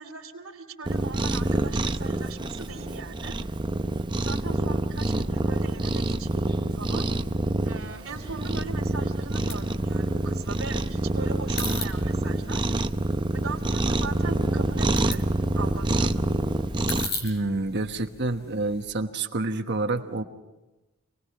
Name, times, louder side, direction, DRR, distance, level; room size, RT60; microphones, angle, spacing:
voice 1, 0.0-3.4 4.2-7.1 7.6-12.7 13.3-15.3 15.5-16.3, right 4 dB, 80° right, 2 dB, 2.8 m, -39 dB
Cat, 0.9-17.1, right 2 dB, 20° right, 0.6 m, -27 dB
sound 1, 7.9-18.9, left 3 dB, 50° left, 4.6 m, -41 dB
voice 2, 17.2-20.2, right 2 dB, 55° right, 6 dB, 1.2 m, -28 dB
27.0 x 19.5 x 5.8 m, 1.1 s
head